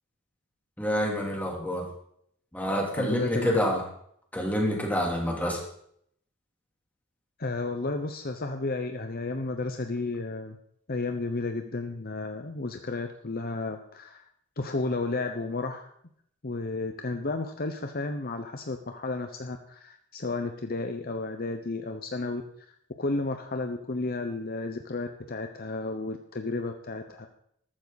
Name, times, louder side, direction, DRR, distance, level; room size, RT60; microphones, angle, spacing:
voice 1, 0.8-1.8 2.5-3.8 4.3-5.6, equal, 10° left, -1 dB, 3.3 m, -27 dB
voice 2, 3.0-3.6 7.4-10.6 10.9-14.2 14.6-15.9 16.4-22.7 23.0-27.3, left 3 dB, 45° left, 6 dB, 1.0 m, -32 dB
14.0 x 13.5 x 4.2 m, 0.67 s
head